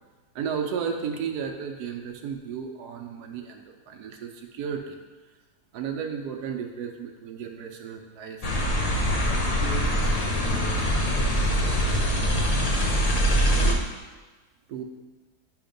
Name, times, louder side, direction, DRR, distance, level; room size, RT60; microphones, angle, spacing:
voice 1, 0.3-5.0 5.7-9.8 13.1-13.4 14.7-14.8, right 7 dB, 75° right, 2 dB, 1.2 m, -34 dB
sound 1, 8.4-13.7, equal, 50° left, 0.4 m, -23 dB
8.5 x 2.9 x 5.1 m, 1.3 s
omnidirectional pair, 1.7 m